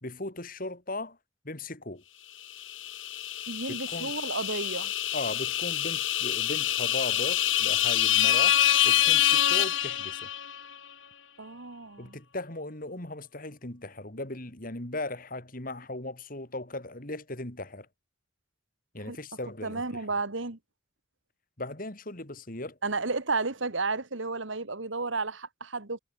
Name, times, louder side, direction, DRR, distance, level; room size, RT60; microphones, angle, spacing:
voice 1, 0.0-1.2 1.4-2.0 3.7-4.1 5.1-10.3 12.0-17.9 18.9-20.2 21.6-22.8, left 2 dB, 45° left, 3.0 m, -38 dB
sound 1, 2.6-10.6, left 11 dB, 75° left, 3.6 m, -26 dB
voice 2, 3.5-4.9 11.4-12.2 19.1-19.2 19.6-20.6 22.8-26.0, right 3 dB, 70° right, 1.9 m, -32 dB
head